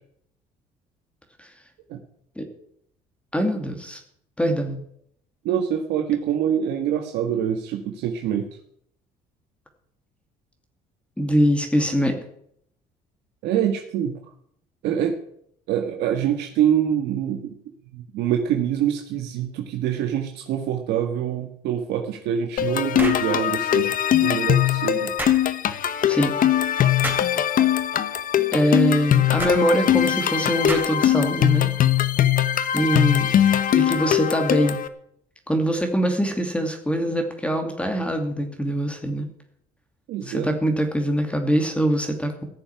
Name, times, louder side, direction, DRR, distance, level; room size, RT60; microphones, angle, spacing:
voice 1, 3.3-4.0 4.4-4.8 11.2-12.1 26.1-26.3 28.5-31.7 32.7-33.3 33.7-34.8 35.5-39.3 40.3-42.4, equal, 5° left, 4 dB, 2.4 m, -23 dB
voice 2, 5.4-8.5 13.4-14.2 14.8-15.2 15.7-17.6 17.9-23.9 24.2-25.1 40.1-40.6, right 9 dB, 85° right, 3 dB, 1.7 m, -25 dB
sound 1, 22.6-34.9, left 11 dB, 55° left, 1.1 m, -21 dB
sound 2, 23.0-23.3 25.2-25.4 27.0-27.3 29.4-29.6 30.7-31.1, right 2 dB, 10° right, 3.6 m, -30 dB
15.5 x 6.9 x 9.6 m, 0.70 s
cardioid pair, 110°, 17 cm